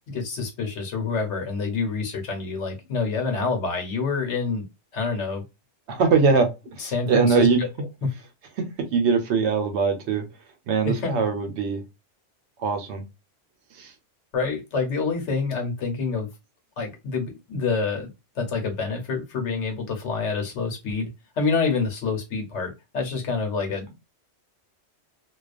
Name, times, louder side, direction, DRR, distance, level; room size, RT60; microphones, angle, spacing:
voice 1, 0.1-4.7 4.9-5.4 6.8-7.7 8.0-8.1 10.8-11.1 14.3-16.3 16.8-18.1 18.4-21.1 21.4-23.9, left 4 dB, 80° left, 1.1 m, -27 dB
voice 2, 5.9-7.7 8.6-10.3 10.7-11.8 12.6-13.1 13.7-13.9, right 5 dB, 75° right, 0.9 m, -22 dB
2.3 x 2.3 x 2.4 m
omnidirectional pair, 1.2 m